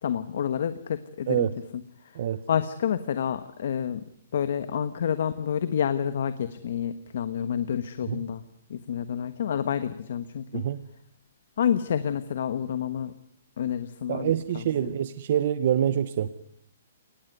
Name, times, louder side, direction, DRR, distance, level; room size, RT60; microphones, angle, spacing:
voice 1, 0.0-1.5 1.7-2.2 2.5-4.0 4.3-8.4 8.7-10.6 11.6-13.1 13.6-14.9, left 8 dB, 60° left, 12 dB, 1.2 m, -29 dB
voice 2, 14.1-16.3, right 10 dB, 45° right, 14 dB, 0.9 m, -26 dB
23.0 x 19.5 x 9.5 m, 0.69 s
hypercardioid pair, 170°, 0 cm